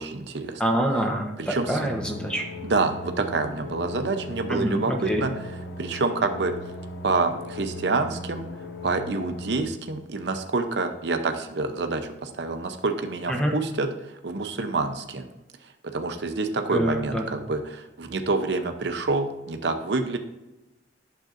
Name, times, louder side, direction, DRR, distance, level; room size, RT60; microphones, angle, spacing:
voice 1, 0.0-0.6 1.4-1.9 2.6-5.5 5.8-6.5 7.0-8.4 8.8-13.9 14.2-15.3 15.8-20.2, right 3 dB, 70° right, 7 dB, 0.7 m, -27 dB
voice 2, 0.6-2.4 4.5-5.3 13.3-13.6 16.7-17.2, equal, 5° left, 2 dB, 0.9 m, -26 dB
sound 1, 1.7-9.6, left 1 dB, 85° left, 0.9 m, -38 dB
9.1 x 6.7 x 2.5 m, 1.0 s
head